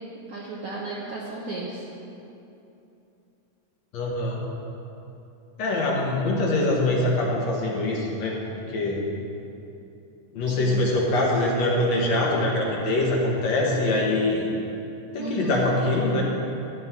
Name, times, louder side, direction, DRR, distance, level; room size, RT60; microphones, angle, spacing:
voice 1, 0.3-1.8 10.5-10.9 15.2-15.7, right 3 dB, 65° right, -5 dB, 1.4 m, -34 dB
voice 2, 3.9-4.4 5.6-9.0 10.3-14.5 15.1-16.2, left 2 dB, 65° left, -3 dB, 2.2 m, -24 dB
12.5 x 9.6 x 3.7 m, 2.8 s
omnidirectional pair, 3.7 m